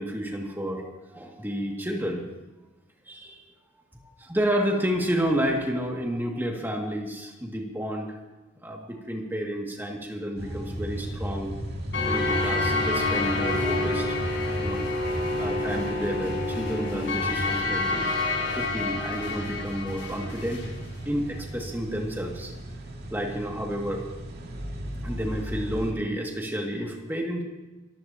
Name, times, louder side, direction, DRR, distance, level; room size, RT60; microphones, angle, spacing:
voice 1, 0.0-2.2 3.1-3.4 4.2-8.2 8.6-11.5 12.1-14.2 14.6-14.8 15.4-18.3 18.5-20.7 21.0-22.5 23.1-24.1 25.0-27.4, equal, 10° right, 0 dB, 2.3 m, -30 dB
sound 1, 10.4-25.9, right 1 dB, 55° right, 2.3 m, -36 dB
sound 2, 11.9-20.7, left 2 dB, 65° left, 6.9 m, -28 dB
24.5 x 15.0 x 3.0 m, 1.1 s
head